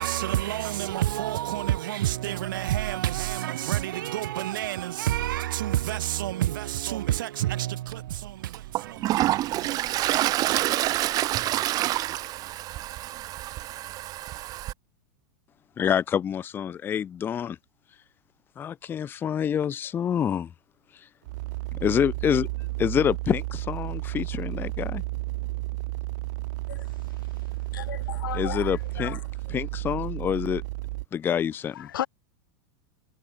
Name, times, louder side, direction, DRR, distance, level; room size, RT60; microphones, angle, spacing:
voice 1, 0.0-10.3, right 14 dB, 75° right, 1.8 m, -29 dB
Toilet flush, 7.9-8.0 8.5-14.7, right 15 dB, 35° right, 2.3 m, -27 dB
voice 2, 15.8-17.6 18.6-20.5 21.7-22.5 22.8-25.0 28.3-29.2 29.5-30.6 31.1-31.9, left 8 dB, 20° left, 0.5 m, -27 dB
sound 1, 21.3-31.0, right 21 dB, 60° right, 1.1 m, -32 dB
voice 3, 27.8-28.7 29.0-29.2 31.9-32.1, left 11 dB, 85° left, 3.5 m, -33 dB
supercardioid pair, 135°, 11 cm